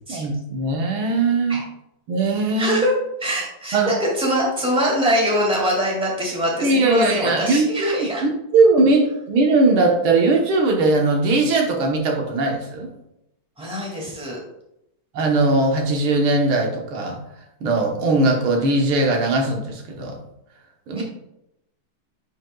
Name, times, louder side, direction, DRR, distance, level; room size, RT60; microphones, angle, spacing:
voice 1, 0.1-1.6 2.1-2.8 3.7-3.9 6.6-12.9 15.1-17.2 17.6-20.2 20.9-21.0, right 2 dB, 90° right, 1 dB, 2.0 m, -19 dB
voice 2, 2.6-2.9 3.2-8.2 13.6-14.4 21.0-21.1, equal, 5° right, -3 dB, 1.9 m, -23 dB
9.5 x 5.4 x 2.3 m, 0.83 s
omnidirectional pair, 2.2 m